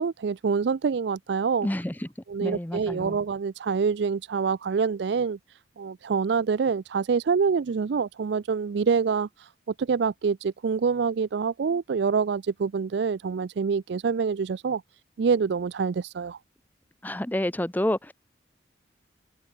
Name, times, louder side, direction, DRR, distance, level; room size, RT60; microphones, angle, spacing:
voice 1, 0.0-1.7 2.3-5.4 5.8-9.5 9.8-14.8 15.2-16.4, right 5 dB, 65° right, 0.4 m, -26 dB
voice 2, 1.6-1.9 2.4-3.2 17.0-18.1, left 1 dB, 10° left, 0.7 m, -28 dB
head